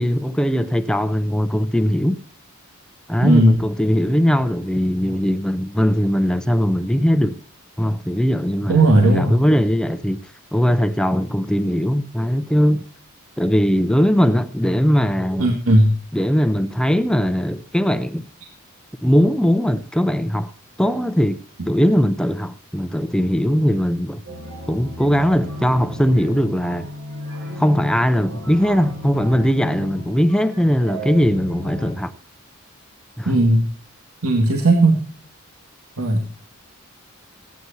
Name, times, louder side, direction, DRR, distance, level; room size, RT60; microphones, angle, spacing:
voice 1, 0.0-2.2 3.1-7.4 7.8-12.9 13.4-15.6 16.1-18.3 19.0-20.5 20.8-21.4 21.7-24.2 24.7-26.9 27.6-32.1 33.2-33.4, equal, 5° left, 0.6 m, -19 dB
voice 2, 3.2-3.6 8.7-9.4 15.4-16.0 33.3-33.7 34.2-35.0 36.0-36.2, right 1 dB, 85° right, 2.2 m, -15 dB
sound 1, 24.3-31.9, equal, 70° right, 5.4 m, -34 dB
25.0 x 9.6 x 2.7 m
head